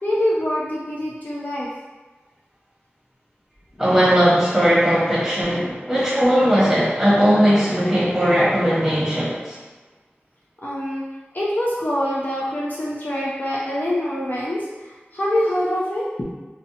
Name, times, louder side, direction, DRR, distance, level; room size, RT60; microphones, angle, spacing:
voice 1, 0.0-1.7 5.6-5.8 10.6-11.0 11.3-16.2, left 1 dB, 45° left, -6 dB, 0.5 m, -25 dB
voice 2, 3.8-9.6, equal, 10° right, -8 dB, 1.0 m, -18 dB
2.5 x 2.1 x 2.7 m, 1.3 s
wide cardioid pair, 45°, 4 cm